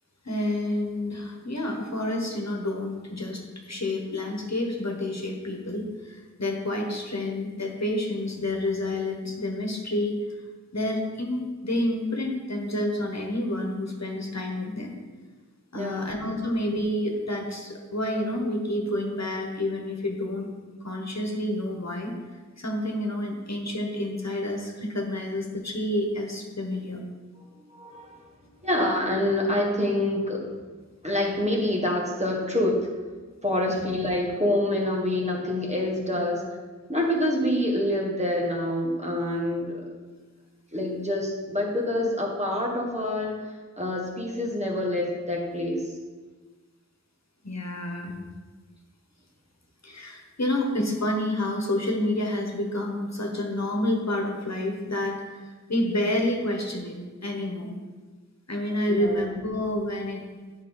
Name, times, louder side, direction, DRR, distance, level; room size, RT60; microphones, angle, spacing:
voice 1, 0.2-10.3 10.7-14.9 15.7-20.5 20.8-22.1 22.6-27.0 33.7-33.8 47.4-48.2 49.8-57.7 58.5-60.2, left 1 dB, 60° left, 1 dB, 1.4 m, -29 dB
voice 2, 15.7-16.1 27.7-28.2 28.6-30.5 31.0-32.9 33.4-36.4 36.9-39.8 40.7-43.4 43.8-45.9 58.9-59.2, left 1 dB, 20° right, -1 dB, 1.6 m, -26 dB
9.5 x 5.3 x 4.1 m, 1.3 s
wide cardioid pair, 50°, 31 cm